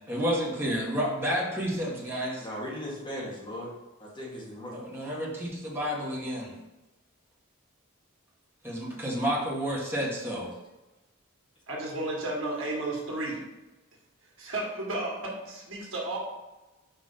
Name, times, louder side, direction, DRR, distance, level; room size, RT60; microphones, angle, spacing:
voice 1, 0.1-2.5 4.7-6.5 8.6-10.5, equal, 10° right, -5 dB, 1.7 m, -30 dB
voice 2, 2.4-3.7 4.0-4.7, equal, 25° left, -5 dB, 2.0 m, -37 dB
voice 3, 11.7-13.4 14.4-16.2, right 2 dB, 65° right, -3 dB, 2.0 m, -33 dB
5.7 x 4.9 x 5.7 m, 1.1 s
head